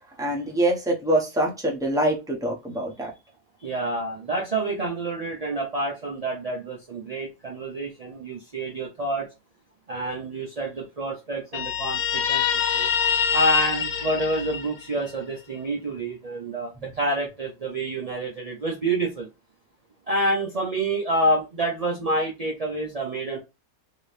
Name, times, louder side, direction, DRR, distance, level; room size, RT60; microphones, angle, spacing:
voice 1, 0.2-3.1, right 1 dB, 5° right, 0.6 m, -24 dB
voice 2, 3.6-9.3 9.9-12.4 12.7-12.9 13.3-19.3 20.1-23.4, right 1 dB, 55° right, 0.4 m, -28 dB
Guitar, 11.5-15.1, left 7 dB, 85° left, 1.2 m, -25 dB
3.0 x 2.8 x 3.2 m
omnidirectional pair, 1.7 m